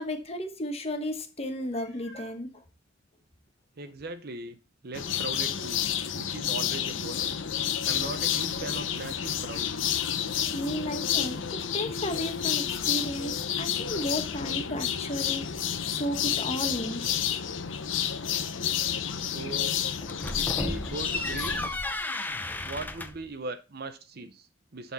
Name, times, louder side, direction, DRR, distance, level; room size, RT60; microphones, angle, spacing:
voice 1, 0.0-2.6 10.5-15.4 15.9-17.0, equal, 30° left, 1.2 m, -33 dB
Meow, 1.7-2.4 3.2-3.3 3.8-3.9 7.9-8.0, right 2 dB, 15° right, 4.2 m, -52 dB
voice 2, 3.8-4.6 4.8-5.9 6.1-7.3 7.9-9.7 19.2-19.8 20.3-21.8 22.6-24.9, right 2 dB, 55° right, 0.7 m, -39 dB
sound 1, 4.9-21.7, left 9 dB, 80° left, 0.8 m, -30 dB
sound 2, 20.0-23.3, left 2 dB, 10° left, 0.7 m, -33 dB
12.0 x 4.2 x 4.1 m
head